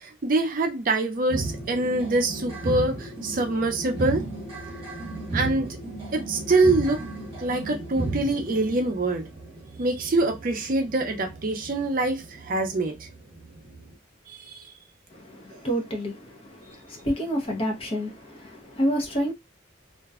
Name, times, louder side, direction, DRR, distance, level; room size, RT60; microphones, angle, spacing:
voice 1, 0.0-4.3 5.3-5.7 6.1-7.1 7.4-9.3 9.8-12.9 14.3-14.6, right 2 dB, 45° right, 0.5 m, -25 dB
sound 1, 1.3-13.9, right 2 dB, 30° right, 0.9 m, -35 dB
voice 2, 15.1-16.2 16.7-19.3, equal, 30° left, 0.7 m, -28 dB
2.5 x 2.2 x 2.3 m
head